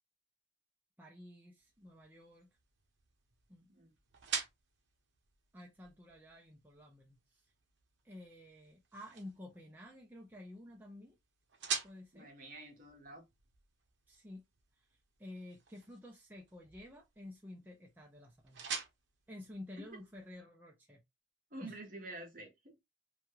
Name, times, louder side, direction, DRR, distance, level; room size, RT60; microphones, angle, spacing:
voice 1, 1.0-2.5 3.5-3.7 5.5-7.5 8.0-11.2 11.8-12.3 14.1-14.4 14.8-14.9 15.2-18.6 19.3-21.0 21.6-21.7, left 1 dB, 10° right, 0.5 m, -51 dB
sound 1, 1.6-20.4, right 6 dB, 75° right, 0.7 m, -48 dB
voice 2, 12.1-13.2 19.8-20.0 21.5-22.8, right 2 dB, 45° right, 1.0 m, -49 dB
3.0 x 2.4 x 2.8 m
head